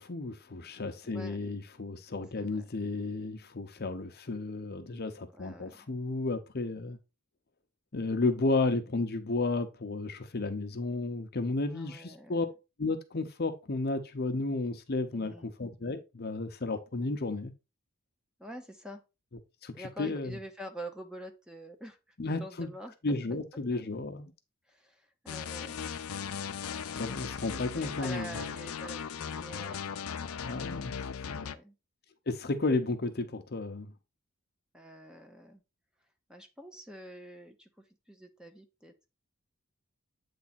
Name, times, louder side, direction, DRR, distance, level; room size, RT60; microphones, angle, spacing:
voice 1, 0.0-7.0 7.9-12.5 12.8-17.5 19.6-20.4 22.2-22.7 23.0-24.3 26.9-28.4 30.4-31.0 31.3-31.4 32.3-33.9, left 3 dB, 50° left, 0.7 m, -33 dB
voice 2, 1.0-1.5 2.3-2.7 5.3-5.9 11.6-12.4 15.1-15.5 18.4-19.0 19.7-23.4 24.7-26.1 26.9-30.2 31.0-31.8 34.7-35.6 36.3-38.9, equal, 5° right, 0.8 m, -47 dB
sound 1, 25.3-31.6, left 7 dB, 85° left, 0.6 m, -38 dB
8.4 x 3.4 x 4.1 m
head